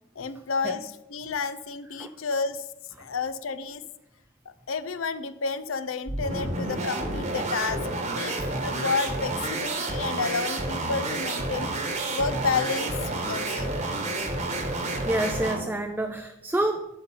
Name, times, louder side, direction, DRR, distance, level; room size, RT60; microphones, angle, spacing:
voice 1, 0.2-2.7 3.0-3.8 4.7-7.8 8.2-11.7 12.1-13.7, left 4 dB, 85° left, 13 dB, 0.6 m, -30 dB
sound 1, 6.1-15.7, right 2 dB, 35° right, 1.2 m, -30 dB
voice 2, 14.5-16.9, right 1 dB, 10° right, 5 dB, 0.4 m, -29 dB
11.5 x 3.9 x 5.6 m, 0.93 s
head